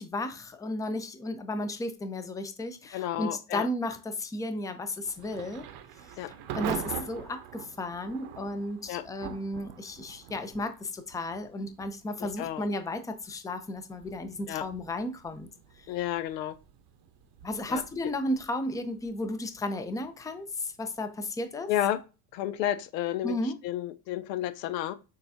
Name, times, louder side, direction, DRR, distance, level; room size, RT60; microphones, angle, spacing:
voice 1, 0.0-5.7 6.5-15.5 15.8-16.0 17.4-21.7 23.2-23.6, left 1 dB, 10° left, 0.5 m, -34 dB
voice 2, 2.9-3.7 6.2-6.3 8.9-9.1 12.2-12.6 14.5-14.7 15.9-16.6 17.7-17.8 21.7-22.0 22.3-24.9, left 12 dB, 85° left, 0.6 m, -31 dB
Thunder / Rain, 5.0-21.7, right 9 dB, 55° right, 0.8 m, -44 dB
6.5 x 2.3 x 2.7 m
hypercardioid pair, 75°, 48 cm